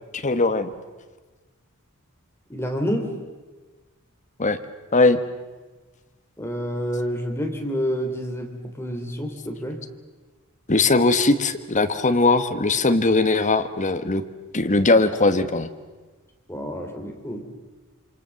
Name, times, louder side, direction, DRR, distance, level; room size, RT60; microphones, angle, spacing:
voice 1, 0.1-0.7 4.4-4.6 4.9-5.2 10.7-14.2 14.5-15.7, left 3 dB, 35° left, 8 dB, 1.5 m, -20 dB
voice 2, 2.5-3.1 6.4-9.8 16.5-17.4, equal, 10° left, 3 dB, 3.1 m, -28 dB
27.0 x 25.5 x 7.1 m, 1.3 s
head